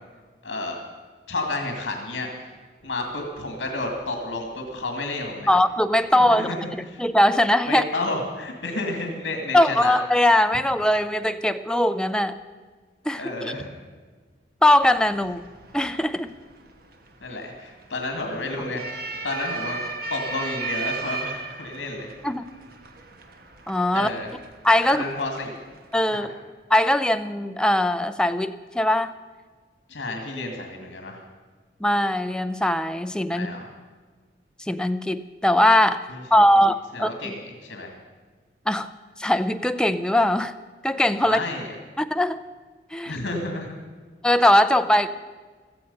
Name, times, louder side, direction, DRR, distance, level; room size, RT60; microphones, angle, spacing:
voice 1, 0.4-0.8 1.3-2.3 2.8-5.5 6.1-6.6 6.9-7.0 7.6-10.0 13.2-13.7 17.2-22.1 23.9-24.3 24.8-25.5 26.1-26.3 29.9-31.2 33.3-33.7 36.1-36.5 36.9-37.9 41.2-41.8 43.0-43.8, left 2 dB, 75° left, 2 dB, 2.2 m, -31 dB
sound 1, 2.8-10.6, right 1 dB, 85° right, 3.8 m, -54 dB
voice 2, 5.5-6.5 7.0-7.8 9.5-12.4 13.1-13.5 14.6-15.4 15.7-16.3 22.2-22.4 23.7-24.1 24.6-25.0 25.9-26.3 26.7-29.1 31.8-33.5 34.7-36.0 36.3-37.3 38.7-38.9 39.2-40.5 40.8-41.4 42.0-42.4 42.9-43.1 44.2-45.1, left 1 dB, 5° left, 9 dB, 0.5 m, -20 dB
sound 2, 14.8-26.0, right 4 dB, 55° right, 1.3 m, -37 dB
16.5 x 13.5 x 5.5 m, 1.4 s
head